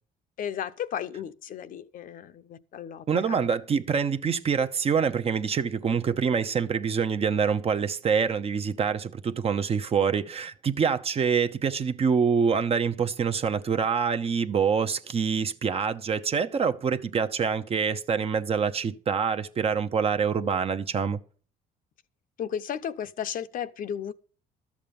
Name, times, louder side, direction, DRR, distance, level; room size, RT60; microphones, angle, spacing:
voice 1, 0.4-3.5 22.4-24.1, left 9 dB, 55° left, 0.7 m, -34 dB
voice 2, 3.1-21.2, right 6 dB, 35° right, 0.8 m, -26 dB
13.0 x 7.3 x 5.3 m
cardioid pair, 110°, 17 cm